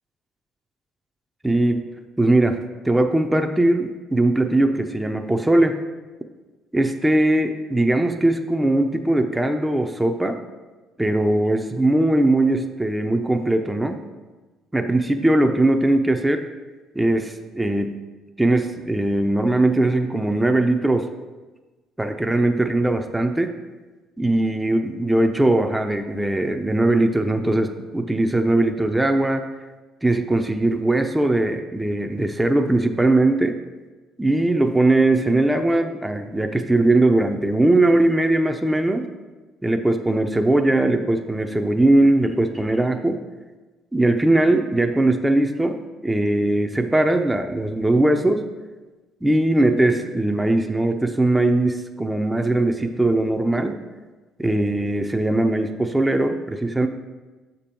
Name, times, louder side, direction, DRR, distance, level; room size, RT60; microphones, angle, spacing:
voice 1, 1.4-1.9 2.2-2.6 2.8-5.8 6.7-10.4 11.0-14.0 14.7-16.4 16.9-17.9 18.4-21.1 22.0-23.6 24.2-29.4 30.0-33.6 34.2-39.1 39.6-43.2 43.9-48.5 49.2-53.8 54.4-56.9, right 2 dB, 10° right, 5 dB, 0.5 m, -20 dB
6.8 x 5.3 x 4.4 m, 1.2 s
cardioid pair, 90°, 0 cm